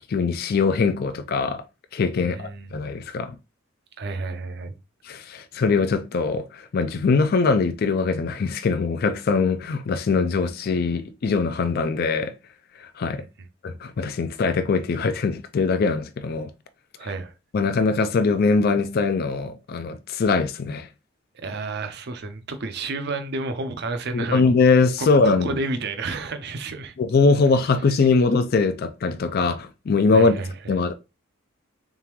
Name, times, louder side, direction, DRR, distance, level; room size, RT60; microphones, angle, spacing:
voice 1, 0.1-1.6 1.9-3.3 5.0-12.3 12.8-13.2 13.6-16.5 17.5-20.9 24.1-25.6 27.0-30.3 30.7-30.9, left 4 dB, 50° left, 0.4 m, -22 dB
voice 2, 2.2-2.7 4.0-4.7 17.0-17.3 21.3-24.4 25.0-26.9 30.1-30.5, right 3 dB, 55° right, 0.6 m, -31 dB
3.7 x 3.6 x 3.0 m
head